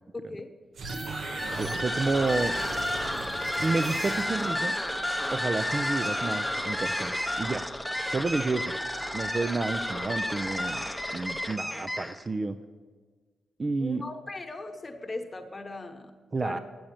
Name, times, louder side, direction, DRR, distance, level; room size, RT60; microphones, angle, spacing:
voice 1, 0.1-0.5 13.8-16.1 16.4-16.6, left 2 dB, 25° left, 5 dB, 1.2 m, -39 dB
sound 1, 0.7-4.6, right 4 dB, 65° right, 0.8 m, -39 dB
sound 2, 0.8-12.3, left 1 dB, 5° left, 0.7 m, -31 dB
voice 2, 1.6-2.5 3.6-4.7 5.3-7.6 8.1-8.8 9.1-10.8 11.1-12.6 13.6-14.0 16.3-16.6, right 3 dB, 30° right, 10 dB, 0.4 m, -30 dB
8.6 x 7.7 x 8.7 m, 1.5 s
cardioid pair, 105°, 0 cm